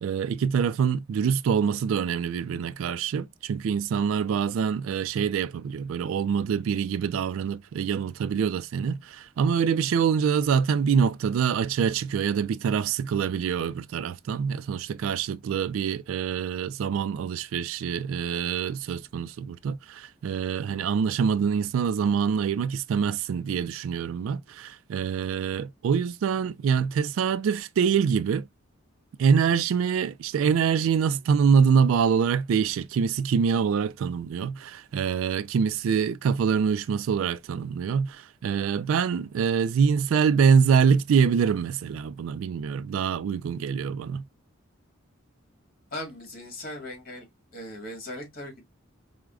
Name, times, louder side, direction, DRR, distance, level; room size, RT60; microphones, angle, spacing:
voice 1, 0.0-28.5 29.2-44.2, right 6 dB, 80° right, 0.3 m, -25 dB
voice 2, 45.9-47.3 47.5-48.7, left 1 dB, 45° left, 1.4 m, -38 dB
4.7 x 2.1 x 2.3 m
head